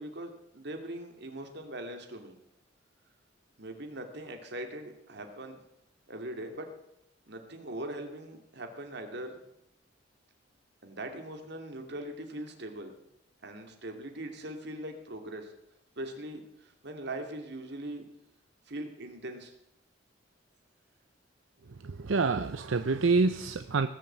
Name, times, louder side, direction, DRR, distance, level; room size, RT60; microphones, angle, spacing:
voice 1, 0.0-2.4 3.6-5.6 6.1-6.7 7.2-9.4 10.8-12.9 13.4-15.5 16.0-18.0 18.7-19.5, right 1 dB, 60° right, 5 dB, 2.5 m, -41 dB
voice 2, 21.8-23.9, right 4 dB, 80° right, 10 dB, 0.7 m, -27 dB
19.0 x 7.3 x 8.0 m, 0.80 s
head